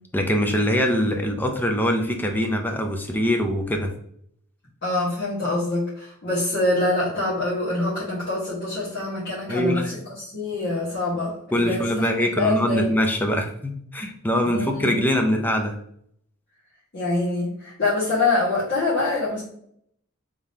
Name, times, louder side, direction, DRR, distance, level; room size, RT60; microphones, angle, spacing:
voice 1, 0.1-3.9 9.5-9.9 11.5-15.8, equal, 10° left, 4 dB, 0.4 m, -23 dB
voice 2, 4.8-12.9 14.4-15.0 16.9-19.4, left 2 dB, 50° left, -10 dB, 1.5 m, -25 dB
3.6 x 3.6 x 2.7 m, 0.69 s
head